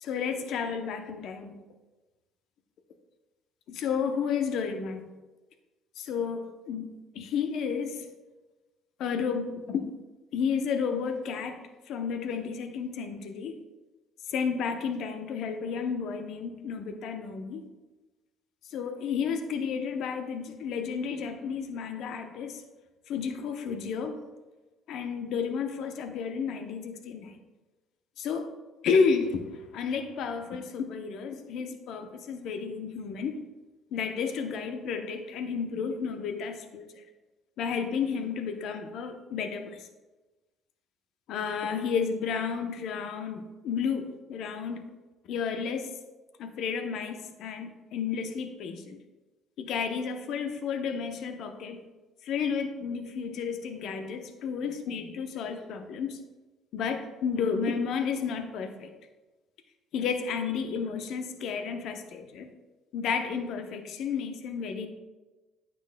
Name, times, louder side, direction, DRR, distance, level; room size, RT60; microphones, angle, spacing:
voice 1, 0.0-1.6 3.7-5.1 6.0-6.9 7.1-8.1 9.0-9.9 10.3-13.6 14.3-17.6 18.7-22.6 23.1-24.2 24.9-27.4 28.2-28.5 28.8-33.4 33.9-37.0 37.6-39.9 41.3-44.9 45.3-45.9 46.4-49.0 49.6-51.9 52.2-56.2 56.7-58.9 59.9-62.5 62.9-64.9, left 6 dB, 65° left, 7 dB, 0.7 m, -32 dB
9.0 x 6.9 x 2.2 m, 1.2 s
hypercardioid pair, 65°, 0 cm